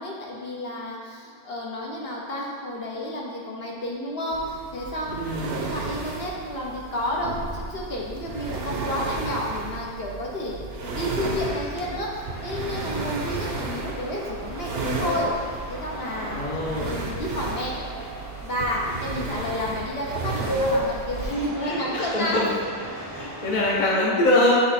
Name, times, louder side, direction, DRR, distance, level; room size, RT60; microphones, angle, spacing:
voice 1, 0.0-10.6 10.8-15.3 15.7-16.5 16.8-17.7 18.4-22.5, left 1 dB, 60° left, -3 dB, 1.2 m, -31 dB
sound 1, 4.3-21.3, right 3 dB, 65° right, 0.9 m, -33 dB
voice 2, 5.1-5.5 16.4-17.1 21.7-22.5 22.9-24.5, left 1 dB, 45° left, -4 dB, 1.0 m, -24 dB
sound 2, 11.2-23.9, equal, 15° right, 0.8 m, -35 dB
8.4 x 3.2 x 4.2 m, 2.2 s
omnidirectional pair, 1.2 m